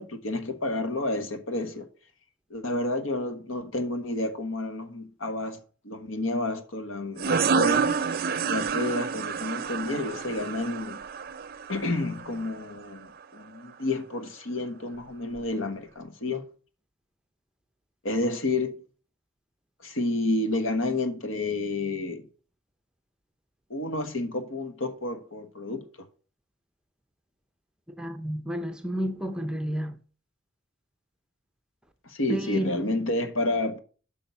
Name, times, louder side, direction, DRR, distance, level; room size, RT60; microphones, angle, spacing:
voice 1, 0.0-1.9 2.5-5.6 5.8-11.0 11.7-16.4 18.0-18.8 19.8-22.3 23.7-25.8 32.0-33.8, left 2 dB, 85° left, 1.3 m, -30 dB
sound 1, 7.2-12.5, right 5 dB, 45° right, 0.5 m, -28 dB
voice 2, 28.0-29.9 32.3-32.8, equal, 5° right, 0.6 m, -31 dB
8.5 x 5.6 x 6.9 m
head